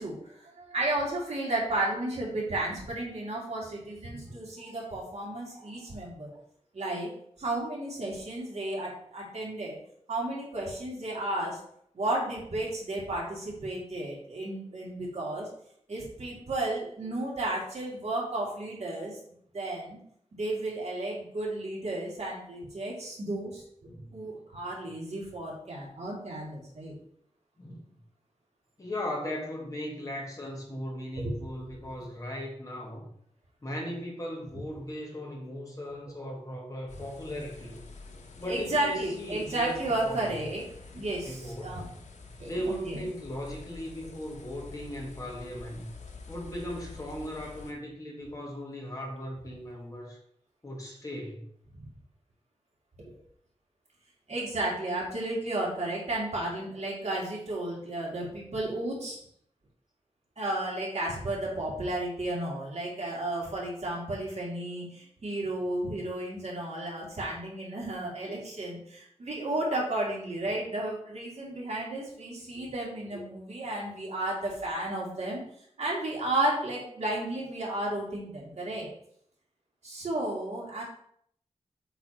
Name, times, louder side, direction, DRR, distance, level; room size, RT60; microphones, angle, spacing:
voice 1, 0.0-6.3 6.7-7.1 7.4-9.8 10.1-11.6 11.9-15.5 15.9-19.2 19.5-20.0 20.3-23.6 24.1-26.9 31.2-31.4 38.1-38.2 38.5-40.6 40.9-41.9 42.4-43.0 53.0-53.1 54.3-59.2 60.4-75.4 75.8-78.9 79.8-80.8, right 1 dB, 70° right, -4 dB, 2.5 m, -33 dB
voice 2, 23.9-24.3 27.6-27.8 28.8-33.1 33.6-37.7 38.4-40.4 41.2-41.7 42.5-45.9 46.3-50.2 50.6-51.5, equal, 30° left, -2 dB, 1.9 m, -37 dB
sound 1, 36.9-47.7, left 4 dB, 80° left, 1.0 m, -48 dB
8.1 x 3.5 x 4.4 m, 0.67 s
wide cardioid pair, 125°, 12 cm